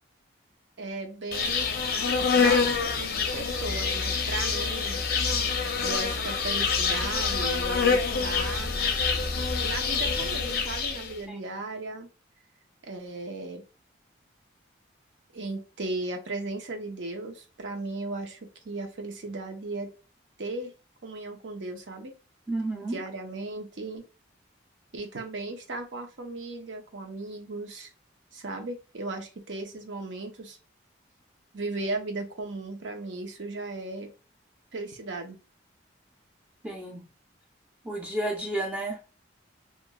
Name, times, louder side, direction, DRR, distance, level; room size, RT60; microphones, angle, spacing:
voice 1, 0.8-1.7 2.3-5.0 5.8-8.8 9.6-12.1 12.8-13.6 15.3-18.4 18.6-19.9 20.4-20.7 21.0-22.1 22.8-24.0 24.9-27.9 28.3-30.6 31.5-34.1 34.7-35.4, right 2 dB, 70° right, 0.7 m, -36 dB
Insect, 1.3-11.1, left 5 dB, 50° left, 0.5 m, -26 dB
voice 2, 22.5-23.0 36.6-37.0 37.8-39.0, right 1 dB, 5° right, 0.6 m, -31 dB
2.9 x 2.5 x 2.2 m
head